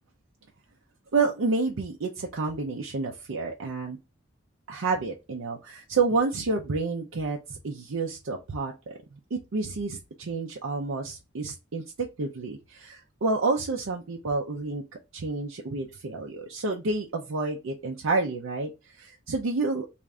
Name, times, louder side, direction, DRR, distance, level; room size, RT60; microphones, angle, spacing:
voice 1, 1.1-4.0 4.7-14.8 15.1-18.7 19.0-19.9, right 3 dB, 90° right, 0 dB, 0.6 m, -29 dB
3.6 x 2.6 x 3.2 m, 0.27 s
head